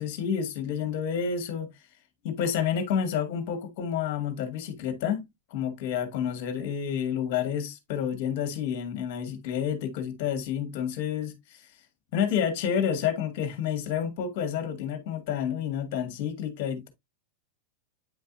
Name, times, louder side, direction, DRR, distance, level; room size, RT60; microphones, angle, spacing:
voice 1, 0.0-1.7 2.2-5.2 5.5-11.6 12.1-16.9, left 8 dB, 45° left, 1.9 m, -29 dB
9.0 x 5.3 x 2.7 m
figure-of-eight pair, 90°, 0 cm